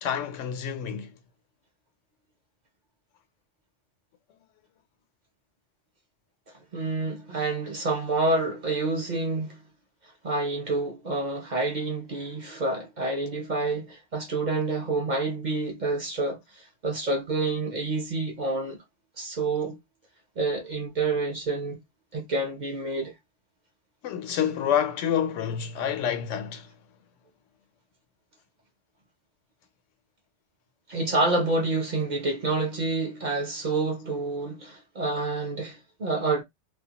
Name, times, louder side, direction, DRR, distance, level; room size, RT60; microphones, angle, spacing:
voice 1, 0.0-1.2 24.0-26.7, left 9 dB, 90° left, 0.9 m, -28 dB
voice 2, 6.7-9.6 10.2-18.8 19.2-19.8 20.4-21.8 22.1-23.1 30.9-36.4, right 3 dB, 50° right, 0.6 m, -28 dB
2.4 x 2.1 x 2.8 m
omnidirectional pair, 1.2 m